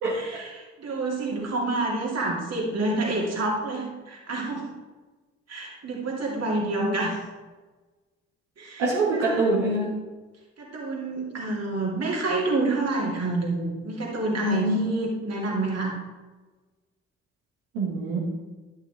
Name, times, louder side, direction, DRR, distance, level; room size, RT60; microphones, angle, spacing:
voice 1, 0.1-4.6 5.5-7.2 8.6-9.5 10.6-15.9, right 2 dB, 50° right, -2 dB, 3.0 m, -28 dB
voice 2, 8.8-10.0 14.4-14.8 17.7-18.2, right 2 dB, 75° right, -7 dB, 1.9 m, -24 dB
11.0 x 6.5 x 3.6 m, 1.3 s
hypercardioid pair, 40°, 33 cm